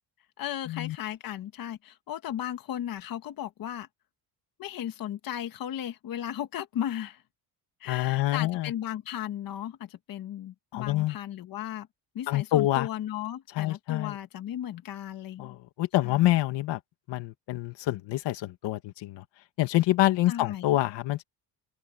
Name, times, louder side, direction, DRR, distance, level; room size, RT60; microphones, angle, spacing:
voice 1, 0.4-3.9 4.6-7.2 7.8-11.9 12.1-15.6 16.0-16.2 20.3-20.8, left 11 dB, 50° left, 1.6 m, -36 dB
voice 2, 7.9-8.7 10.7-11.2 12.3-12.9 13.6-14.1 15.4-16.8 17.1-19.2 19.6-21.2, left 16 dB, 70° left, 2.0 m, -26 dB
open air
cardioid pair, 145°, 45 cm